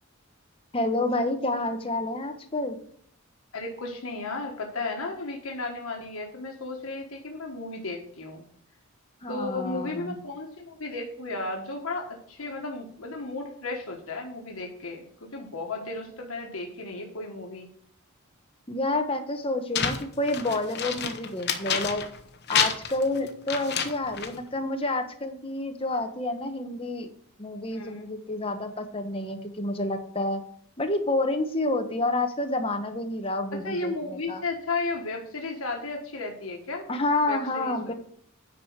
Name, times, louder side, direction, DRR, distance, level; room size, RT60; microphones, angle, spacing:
voice 1, 0.7-2.8 9.2-10.2 18.7-22.0 22.5-27.1 27.4-30.4 30.8-34.4 36.9-37.9, left 2 dB, 25° left, 6 dB, 1.0 m, -29 dB
voice 2, 3.5-8.4 9.3-15.0 15.3-17.7 27.7-28.1 33.6-36.9 37.3-37.9, left 3 dB, 80° left, 1 dB, 1.5 m, -34 dB
sound 1, 19.7-22.2 22.5-24.4, left 7 dB, 50° left, 1.0 m, -28 dB
9.3 x 4.9 x 5.6 m, 0.63 s
head